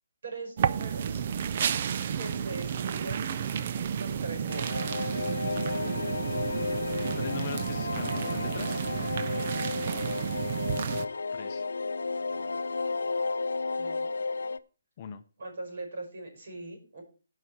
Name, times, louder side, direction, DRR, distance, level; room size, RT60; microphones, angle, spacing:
voice 1, 0.2-1.2 2.2-3.3 4.0-5.0 9.4-9.7 13.8-14.1 15.4-17.0, right 2 dB, 55° right, 4 dB, 5.4 m, -41 dB
sound 1, 0.6-11.1, right 8 dB, 40° right, 0.5 m, -31 dB
sound 2, 4.5-14.6, left 3 dB, 90° left, 0.6 m, -33 dB
voice 2, 7.2-8.8 11.3-11.6 15.0-15.2, left 8 dB, 30° left, 9 dB, 0.7 m, -40 dB
17.0 x 5.7 x 4.7 m, 0.35 s
hypercardioid pair, 165°, 0 cm